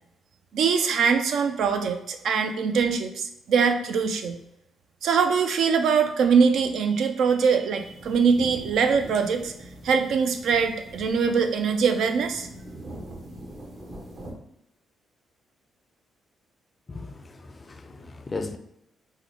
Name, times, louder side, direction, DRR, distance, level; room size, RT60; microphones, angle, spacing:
voice 1, 0.5-4.4 5.0-9.5 9.8-12.5, right 6 dB, 75° right, 0.4 m, -22 dB
sound 1, 7.8-14.3, right 1 dB, 55° right, 0.9 m, -43 dB
voice 2, 16.9-17.2 17.4-18.6, left 3 dB, 30° left, 0.4 m, -36 dB
3.7 x 2.1 x 3.1 m
cardioid pair, 85°, 0 cm